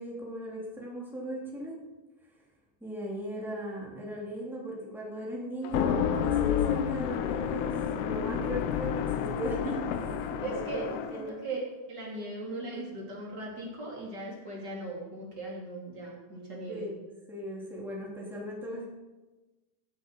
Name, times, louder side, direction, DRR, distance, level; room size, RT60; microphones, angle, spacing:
voice 1, 0.0-1.8 2.8-10.8 11.1-11.4 12.2-12.3 16.7-17.0 17.3-18.9, equal, ahead, -4 dB, 1.8 m, -38 dB
sound 1, 5.6-11.3, left 8 dB, 80° left, 3.3 m, -30 dB
voice 2, 10.4-16.9, right 2 dB, 25° right, -4 dB, 3.1 m, -38 dB
17.0 x 7.6 x 6.8 m, 1.2 s
omnidirectional pair, 5.9 m